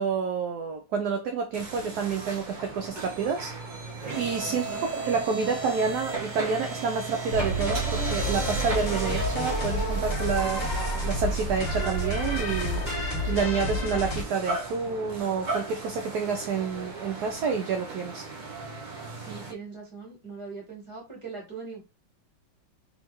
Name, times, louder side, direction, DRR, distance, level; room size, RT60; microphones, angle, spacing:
voice 1, 0.0-3.5 4.2-12.8 13.3-18.3, right 5 dB, 70° right, 1.1 m, -29 dB
sound 1, 1.5-19.5, right 3 dB, 35° right, 0.7 m, -35 dB
voice 2, 4.5-4.9 10.4-10.7 19.2-21.8, right 4 dB, 15° right, 2.0 m, -41 dB
sound 2, 7.3-14.2, equal, 25° left, 1.5 m, -29 dB
4.0 x 3.6 x 3.0 m
omnidirectional pair, 2.0 m